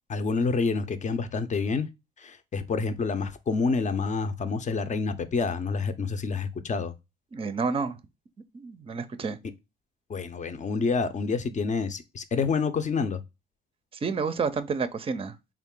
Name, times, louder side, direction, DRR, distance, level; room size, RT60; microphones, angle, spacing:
voice 1, 0.1-1.9 2.2-6.9 10.1-13.2, left 4 dB, 40° left, 0.6 m, -28 dB
voice 2, 7.3-8.0 8.5-9.4 14.0-15.3, right 5 dB, 30° right, 0.5 m, -29 dB
3.7 x 2.4 x 3.6 m
cardioid pair, 90°, 20 cm